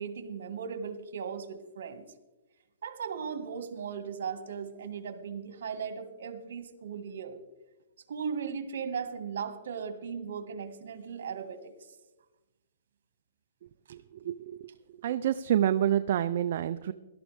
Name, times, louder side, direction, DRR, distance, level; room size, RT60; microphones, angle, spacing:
voice 1, 0.0-2.0 2.8-7.4 8.1-11.7, right 6 dB, 65° right, 9 dB, 1.8 m, -37 dB
voice 2, 13.9-14.7 15.0-16.9, right 11 dB, 50° right, 9 dB, 0.4 m, -28 dB
18.0 x 12.5 x 3.4 m, 1.1 s
hypercardioid pair, 155°, 0 cm